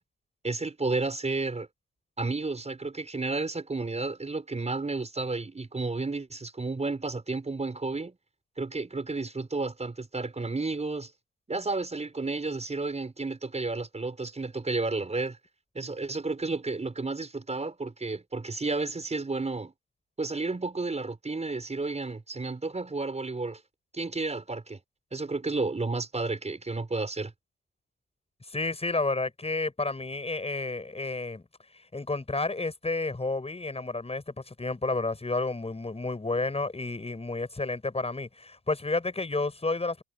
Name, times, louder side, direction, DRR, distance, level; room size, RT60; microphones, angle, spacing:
voice 1, 0.4-1.7 2.2-8.2 8.6-11.1 11.5-15.4 15.7-19.7 20.2-23.6 23.9-24.8 25.1-27.3, right 3 dB, 20° right, 5.6 m, -32 dB
voice 2, 28.5-31.4 31.7-40.0, left 3 dB, 20° left, 7.4 m, -31 dB
cardioid pair, 90°, 30 cm